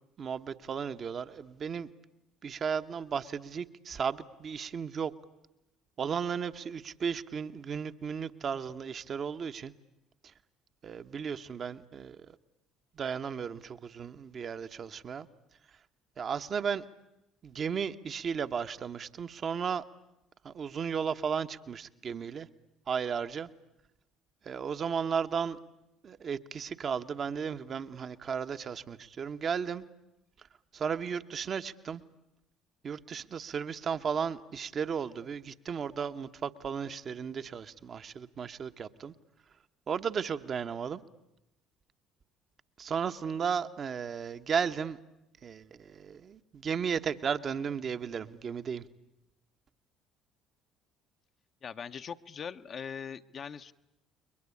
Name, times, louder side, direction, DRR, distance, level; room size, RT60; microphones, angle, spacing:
voice 1, 0.2-1.9 2.4-5.1 6.0-9.7 10.2-10.3 10.8-12.4 12.9-15.3 16.2-16.8 17.4-19.8 20.4-22.5 22.9-23.5 24.4-25.6 26.0-29.8 30.4-30.5 30.7-32.0 32.8-39.1 39.9-41.0 42.8-45.0 45.4-48.8, right 6 dB, 45° right, 10 dB, 1.1 m, -34 dB
voice 2, 51.6-53.7, left 7 dB, 45° left, 9 dB, 0.9 m, -41 dB
29.5 x 22.0 x 8.5 m, 0.88 s
hypercardioid pair, 55°, 0 cm